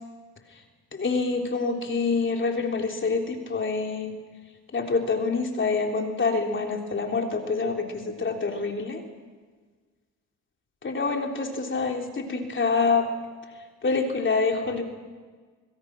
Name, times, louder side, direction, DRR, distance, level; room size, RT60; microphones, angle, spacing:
voice 1, 0.9-4.1 4.7-9.0 10.8-13.1 13.8-14.8, left 4 dB, 35° left, 2 dB, 3.5 m, -26 dB
25.5 x 22.5 x 6.2 m, 1.5 s
supercardioid pair, 85°, 36 cm